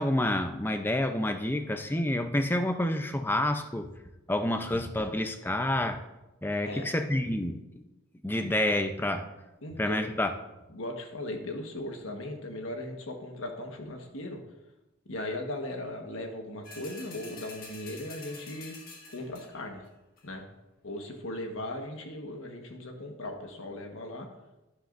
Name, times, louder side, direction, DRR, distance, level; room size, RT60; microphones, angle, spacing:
voice 1, 0.0-3.9 4.3-6.0 6.4-7.6 8.2-9.3 9.8-10.3, left 1 dB, 10° left, 6 dB, 0.6 m, -28 dB
voice 2, 9.6-10.1 10.7-14.4 15.1-18.8 19.1-19.8 20.2-20.5 20.8-24.3, left 1 dB, 75° left, 4 dB, 1.4 m, -38 dB
sound 1, 16.6-19.7 20.2-20.3, left 3 dB, 45° left, 1.7 m, -47 dB
11.5 x 10.0 x 2.6 m, 1.0 s
head